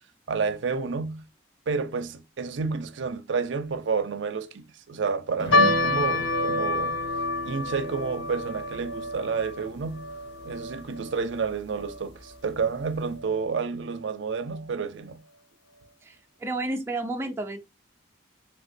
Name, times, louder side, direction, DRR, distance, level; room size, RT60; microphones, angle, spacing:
voice 1, 0.3-1.2 1.7-7.0 7.4-10.1 10.4-15.2, right 5 dB, 75° right, 0.5 m, -30 dB
sound 1, 5.4-12.2 12.5-12.6 12.9-13.1, equal, 65° left, 1.4 m, -36 dB
sound 2, 5.5-12.0 12.3-12.4 13.1-13.4 14.0-14.1 14.5-14.6, left 2 dB, 90° left, 0.6 m, -28 dB
voice 2, 16.0-17.6, right 2 dB, 15° right, 0.4 m, -31 dB
3.4 x 2.9 x 2.5 m
head